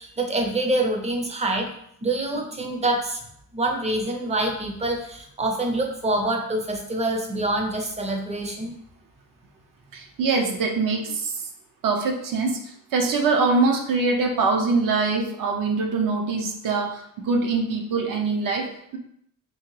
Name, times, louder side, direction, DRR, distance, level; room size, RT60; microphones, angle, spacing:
voice 1, 0.0-1.7 2.0-3.2 3.5-8.7, right 2 dB, 20° right, 2 dB, 0.5 m, -26 dB
voice 2, 9.9-11.5 11.8-19.0, right 4 dB, 65° right, 3 dB, 0.6 m, -24 dB
3.7 x 2.9 x 3.1 m, 0.72 s
wide cardioid pair, 165°, 35 cm